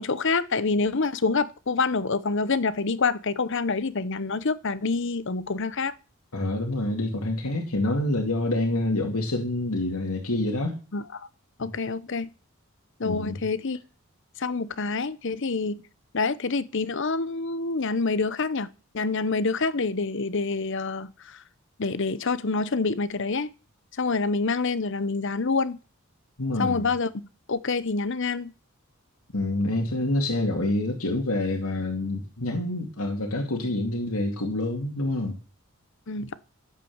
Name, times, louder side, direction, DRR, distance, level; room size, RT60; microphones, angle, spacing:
voice 1, 0.0-5.9 10.9-11.0 11.6-12.3 13.0-13.8 14.4-15.8 16.1-18.7 18.9-21.4 21.8-23.5 24.0-25.8 26.6-27.1 27.5-28.5 36.1-36.4, left 4 dB, 60° left, 0.8 m, -27 dB
voice 2, 6.3-10.8 13.0-13.4 26.4-26.9 29.3-35.4, left 2 dB, 90° left, 2.5 m, -27 dB
13.0 x 8.4 x 7.3 m
head